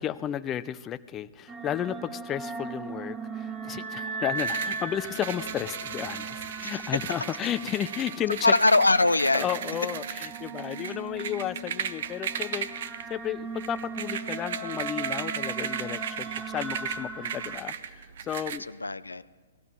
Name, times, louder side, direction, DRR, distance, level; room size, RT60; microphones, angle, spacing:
voice 1, 0.0-8.5 9.3-12.7 13.1-18.6, left 10 dB, 25° left, 14 dB, 0.4 m, -33 dB
sound 1, 1.5-17.6, right 4 dB, 20° right, 1.1 m, -38 dB
sound 2, 4.4-18.6, right 8 dB, 55° right, 0.7 m, -36 dB
voice 2, 8.4-9.5 10.8-11.0 18.7-19.2, left 2 dB, 85° left, 15 dB, 0.4 m, -22 dB
18.0 x 13.5 x 3.7 m, 1.4 s
figure-of-eight pair, 115°, 0 cm